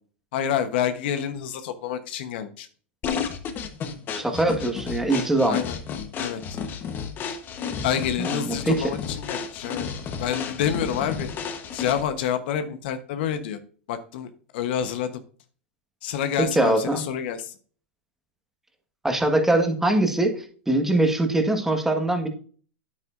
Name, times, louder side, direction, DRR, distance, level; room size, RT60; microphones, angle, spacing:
voice 1, 0.3-2.7 5.4-5.8 6.2-6.4 7.7-9.9 10.2-11.3 11.7-13.6 13.9-15.1 16.0-17.5, left 9 dB, 65° left, 9 dB, 1.1 m, -28 dB
sound 1, 3.0-12.2, left 6 dB, 35° left, 1.2 m, -32 dB
voice 2, 4.1-5.6 8.2-9.0 16.4-17.0 19.0-22.3, right 2 dB, 5° right, 4 dB, 1.6 m, -22 dB
9.5 x 8.6 x 2.6 m, 0.42 s
hypercardioid pair, 110°, 6 cm